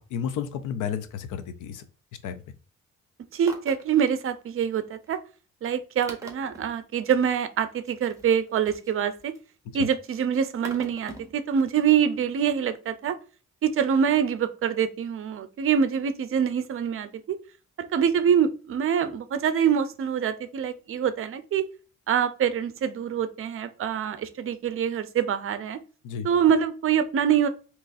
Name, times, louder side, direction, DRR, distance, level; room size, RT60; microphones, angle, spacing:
voice 1, 0.0-1.9 2.2-2.4 9.7-9.9 26.0-26.3, left 8 dB, 85° left, 11 dB, 0.6 m, -32 dB
sound 1, 3.3-3.9 4.4-4.5 5.1-5.2 5.7-5.8 6.0-6.7 7.8-9.5 9.9-11.3 11.7-11.8, right 2 dB, 10° right, 1.0 m, -43 dB
voice 2, 3.3-5.2 5.6-9.3 9.7-13.2 13.6-17.4 17.8-21.6 22.1-25.8 26.2-27.5, right 8 dB, 45° right, 12 dB, 0.5 m, -25 dB
3.8 x 3.0 x 2.5 m, 0.36 s
cardioid pair, 90°, 30 cm